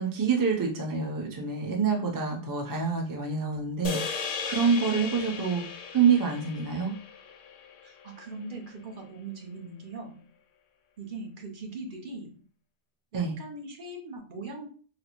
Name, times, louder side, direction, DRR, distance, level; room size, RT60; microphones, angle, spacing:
voice 1, 0.0-6.9 13.1-13.4, right 5 dB, 25° right, 0 dB, 0.6 m, -27 dB
sound 1, 3.8-8.3, left 5 dB, 65° left, 0.7 m, -36 dB
voice 2, 7.8-10.3 11.0-12.4 13.1-14.7, right 3 dB, 55° right, 2 dB, 0.9 m, -40 dB
4.1 x 2.0 x 2.9 m, 0.40 s
omnidirectional pair, 1.0 m